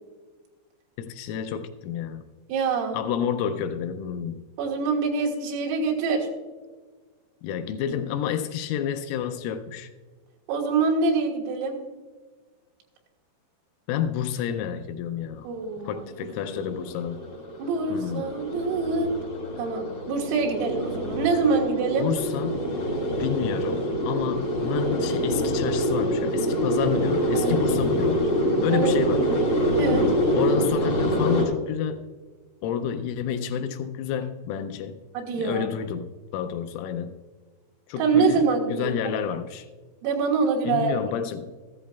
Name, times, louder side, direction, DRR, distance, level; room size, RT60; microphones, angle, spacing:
voice 1, 1.0-2.3 2.9-4.4 7.4-9.9 13.9-15.5 15.9-17.2 17.9-18.3 22.0-22.6 23.2-28.3 28.6-29.3 30.4-32.1 32.6-35.0 35.4-37.2 37.9-39.7 40.7-41.5, left 9 dB, 85° left, 7 dB, 3.0 m, -29 dB
voice 2, 2.5-3.0 4.6-6.3 10.5-11.8 15.4-16.0 17.6-19.1 19.6-22.1 27.3-27.6 28.7-29.1 29.8-30.1 35.2-35.7 38.0-39.2 40.0-41.0, right 4 dB, 85° right, 1 dB, 4.1 m, -25 dB
sound 1, 16.0-31.5, equal, 55° left, 1.2 m, -26 dB
14.0 x 13.5 x 2.3 m, 1.4 s
omnidirectional pair, 5.9 m